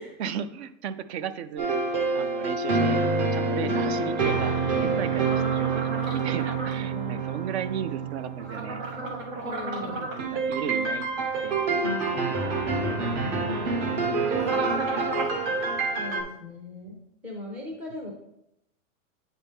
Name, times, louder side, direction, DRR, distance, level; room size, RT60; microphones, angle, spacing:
voice 1, 0.2-1.8 2.1-8.8 9.8-11.0 11.4-13.7 14.0-15.4, right 8 dB, 55° right, 14 dB, 0.5 m, -36 dB
sound 1, 1.6-9.3 10.2-16.2, right 4 dB, 35° right, 1.0 m, -27 dB
voice 2, 3.6-4.0 6.8-7.2 9.5-10.0 10.4-10.5 16.0-18.1, left 1 dB, 5° right, -2 dB, 0.4 m, -39 dB
sound 2, 5.2-6.7 8.4-10.2 14.3-15.4, right 2 dB, 80° right, 1.9 m, -33 dB
9.0 x 4.2 x 3.5 m, 0.80 s
supercardioid pair, 165°, 39 cm